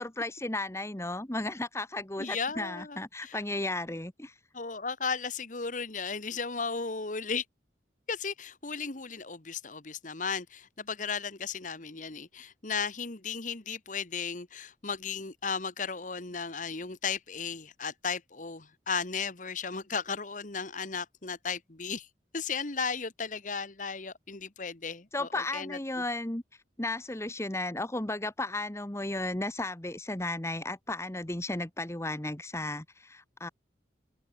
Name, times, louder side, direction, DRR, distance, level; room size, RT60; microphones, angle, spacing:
voice 1, 0.0-4.3 25.1-26.4 26.8-33.5, left 2 dB, 15° left, 1.3 m, -34 dB
voice 2, 2.2-3.4 4.5-7.4 8.1-22.1 22.3-25.8, left 5 dB, 45° left, 1.5 m, -35 dB
head